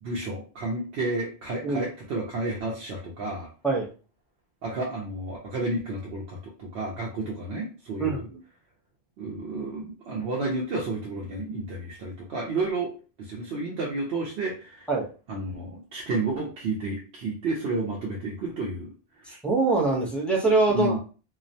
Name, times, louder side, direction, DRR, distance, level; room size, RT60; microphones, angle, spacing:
voice 1, 0.0-3.5 4.6-8.3 9.2-12.9 13.2-14.9 15.3-18.9 19.3-19.4 20.7-21.0, right 2 dB, 90° right, -3 dB, 0.9 m, -31 dB
voice 2, 19.4-21.0, right 3 dB, ahead, -5 dB, 0.5 m, -23 dB
2.3 x 2.1 x 2.6 m, 0.36 s
omnidirectional pair, 1.0 m